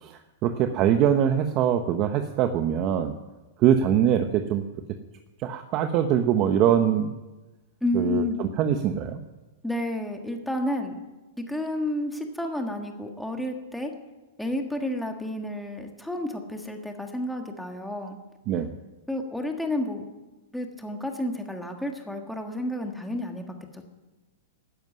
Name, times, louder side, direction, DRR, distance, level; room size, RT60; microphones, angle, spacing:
voice 1, 0.0-3.1 3.6-4.6 5.4-7.1 7.9-8.2 8.6-9.2 18.5-18.7, right 9 dB, 35° right, 7 dB, 1.0 m, -23 dB
voice 2, 7.8-8.4 9.6-10.9 11.4-13.9 14.4-18.2 19.1-20.0 20.5-23.9, left 1 dB, ahead, 3 dB, 1.6 m, -31 dB
13.0 x 11.0 x 9.6 m, 1.1 s
hypercardioid pair, 150°, 0 cm